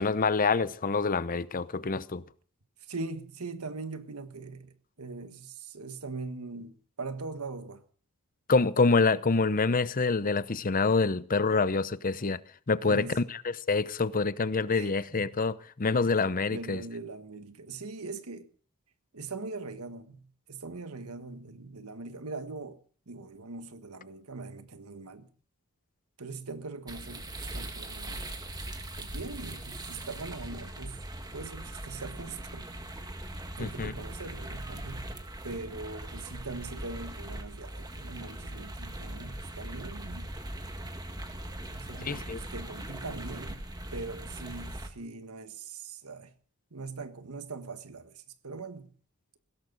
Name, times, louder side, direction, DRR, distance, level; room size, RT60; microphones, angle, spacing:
voice 1, 0.0-2.2 8.5-12.4 12.7-16.8 33.6-33.9 42.0-42.4, left 4 dB, 40° left, 0.7 m, -26 dB
voice 2, 2.9-7.8 12.8-13.2 14.7-15.4 16.5-18.5 19.1-22.8 23.1-25.3 26.2-28.3 29.0-31.0 31.3-32.8 33.6-35.2 35.4-40.3 40.8-40.9 41.6-43.6 43.9-46.3 46.7-48.9, right 3 dB, 90° right, 1.5 m, -41 dB
sound 1, 26.9-44.9, right 1 dB, 20° right, 1.8 m, -40 dB
20.5 x 16.5 x 4.0 m
head